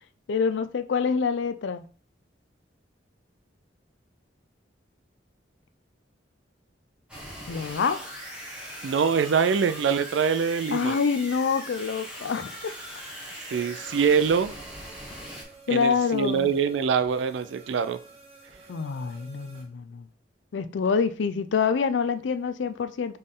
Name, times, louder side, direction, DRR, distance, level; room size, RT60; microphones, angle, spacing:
voice 1, 0.3-1.8 7.5-8.1 10.7-12.7 15.7-16.5 18.7-20.0 20.5-23.2, left 5 dB, 75° left, 0.4 m, -26 dB
sound 1, 7.1-15.4, equal, 5° right, 1.1 m, -40 dB
voice 2, 8.8-11.0 13.5-14.5 15.7-18.0, right 6 dB, 75° right, 0.4 m, -24 dB
sound 2, 13.5-19.6, right 3 dB, 35° right, 0.9 m, -51 dB
4.1 x 3.4 x 3.7 m
head